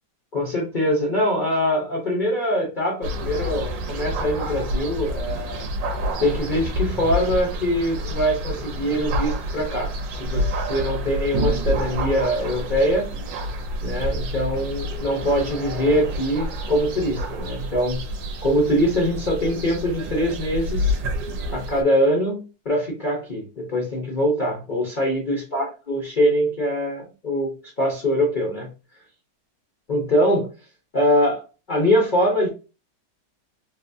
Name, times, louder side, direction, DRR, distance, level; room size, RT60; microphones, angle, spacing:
voice 1, 0.3-5.7 6.2-13.1 13.8-18.1 18.4-21.0 21.5-27.5 27.8-28.7 29.9-30.5 30.9-31.4 31.7-32.5, equal, 90° left, -2 dB, 0.4 m, -23 dB
sound 1, 3.0-21.8, equal, 70° right, 1.3 m, -28 dB
3.9 x 2.3 x 2.6 m, 0.32 s
omnidirectional pair, 2.2 m